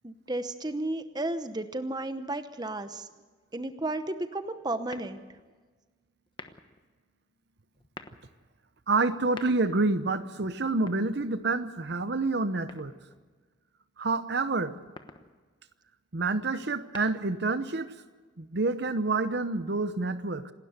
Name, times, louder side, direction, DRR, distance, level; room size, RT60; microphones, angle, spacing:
voice 1, 0.0-3.1 3.5-5.2, right 2 dB, 20° right, 10 dB, 0.9 m, -33 dB
sound 1, 4.9-5.5 6.3-6.8 7.7-8.3 9.1-9.9 10.7-11.6 12.7-13.3 14.7-15.3 16.6-17.5, left 3 dB, 25° left, 1.1 m, -48 dB
voice 2, 8.9-12.9 14.0-14.7 16.1-17.9 18.4-20.5, right 3 dB, 55° right, 12 dB, 0.9 m, -28 dB
28.0 x 12.5 x 8.1 m, 1.4 s
head